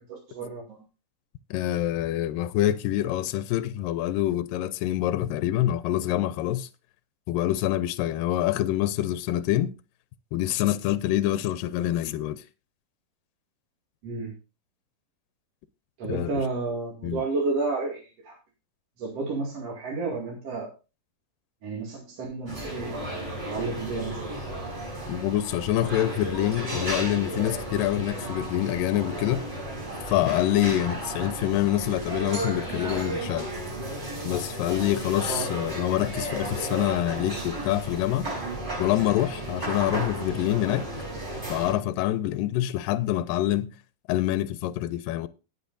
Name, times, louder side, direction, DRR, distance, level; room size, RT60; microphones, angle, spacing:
voice 1, 0.1-0.8 14.0-14.3 16.0-18.4 19.0-20.7 21.6-23.0 23.5-24.2 35.3-35.5, right 3 dB, 50° right, 3.2 m, -31 dB
voice 2, 1.5-6.7 7.3-9.7 10.3-12.4 16.0-16.4 17.0-17.2 25.1-29.4 30.1-33.5 34.2-38.3 38.8-40.9 41.5-43.7 44.1-45.3, left 13 dB, 80° left, 2.3 m, -26 dB
sound 1, 22.5-41.7, right 1 dB, 30° right, 6.4 m, -34 dB
19.0 x 7.7 x 2.6 m
omnidirectional pair, 4.0 m